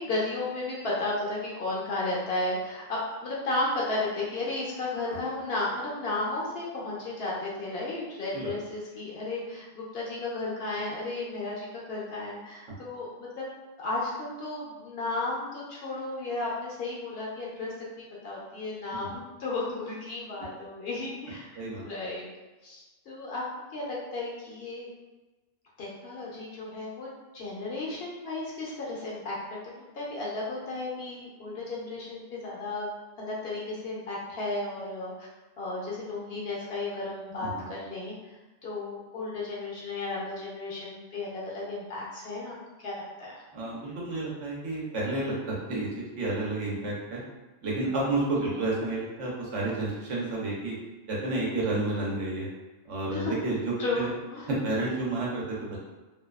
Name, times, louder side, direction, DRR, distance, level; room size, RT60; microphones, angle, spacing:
voice 1, 0.0-13.5 13.8-22.3 22.6-23.4 23.7-24.9 25.8-29.6 29.9-32.9 33.2-35.3 35.6-38.1 38.6-43.4 48.4-48.5 53.1-53.3 53.8-54.5, left 2 dB, 60° left, -5 dB, 0.8 m, -34 dB
voice 2, 43.5-45.9 46.2-47.2 47.6-50.7 51.1-52.5 52.8-54.1 54.6-55.8, right 2 dB, 75° right, -4 dB, 1.1 m, -30 dB
2.7 x 2.3 x 2.2 m, 1.2 s
omnidirectional pair, 1.3 m